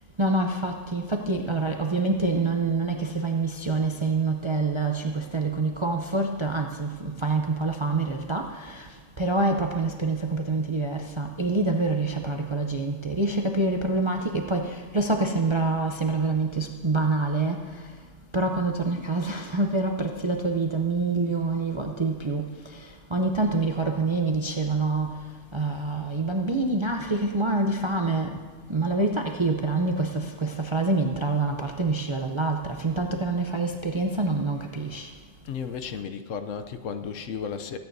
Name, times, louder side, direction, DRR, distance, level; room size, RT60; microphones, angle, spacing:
voice 1, 0.2-8.9 9.2-17.9 18.3-25.2 25.5-28.4 28.7-35.1, right 3 dB, 40° right, 3 dB, 0.4 m, -26 dB
voice 2, 35.4-37.8, left 6 dB, 70° left, 9 dB, 1.0 m, -34 dB
23.0 x 9.3 x 2.7 m, 1.5 s
omnidirectional pair, 1.4 m